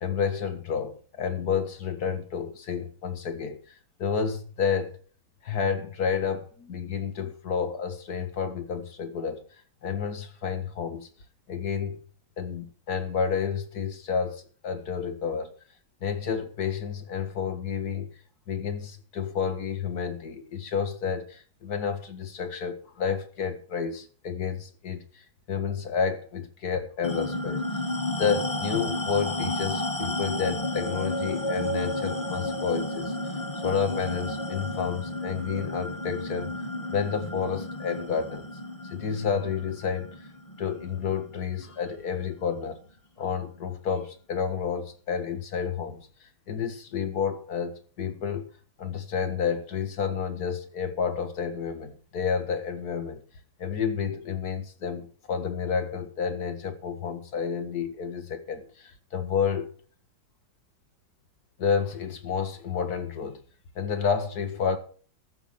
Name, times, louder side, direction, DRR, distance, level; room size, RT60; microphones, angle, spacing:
voice 1, 0.0-5.0 5.4-11.1 11.5-12.0 12.4-15.6 16.0-18.1 18.5-27.7 28.1-33.2 33.6-36.5 36.9-38.5 38.9-40.3 40.6-42.8 43.2-48.5 48.8-53.2 53.6-59.7 61.6-63.4 63.8-64.8, left 6 dB, 50° left, 2.1 m, -30 dB
sound 1, 27.0-41.9, left 1 dB, 20° left, 1.2 m, -32 dB
14.0 x 6.2 x 7.2 m
omnidirectional pair, 2.2 m